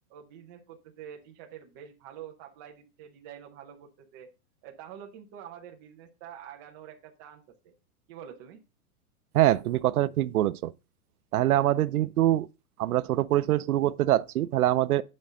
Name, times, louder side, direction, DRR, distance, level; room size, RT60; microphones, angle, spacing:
voice 1, 0.1-4.3 4.6-7.7 8.1-8.6, right 9 dB, 15° right, 0.5 m, -47 dB
voice 2, 9.3-10.7 11.3-12.5 12.8-15.0, right 14 dB, 80° right, 0.6 m, -24 dB
9.6 x 5.3 x 3.7 m
supercardioid pair, 170°, 44 cm